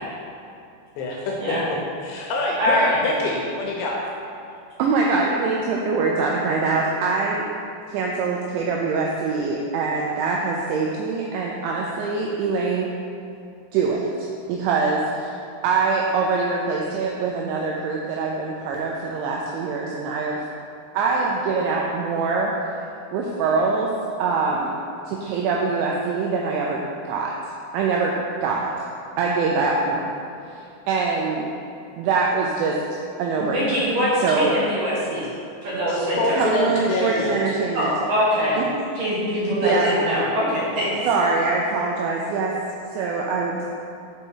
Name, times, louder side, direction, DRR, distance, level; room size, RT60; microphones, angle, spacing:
voice 1, 1.0-1.3 2.0-3.9 35.9-37.6, left 2 dB, 75° left, -2 dB, 3.0 m, -25 dB
voice 2, 2.6-2.9 33.4-35.2 35.6-36.3 37.7-38.6 38.9-40.9, equal, 50° right, -10 dB, 3.0 m, -23 dB
voice 3, 4.8-7.4 7.9-12.9 13.7-20.4 20.9-22.5 23.1-23.9 24.2-24.7 25.1-27.3 27.7-28.7 29.2-30.1 30.5-30.6 30.9-31.5 32.0-32.8 33.2-33.6 34.2-34.5 36.4-37.9 38.6-38.8 39.6-40.0 41.1-42.6 42.9-43.6, right 4 dB, 85° right, -2 dB, 2.6 m, -23 dB
6.9 x 5.2 x 5.5 m, 2.5 s
omnidirectional pair, 5.9 m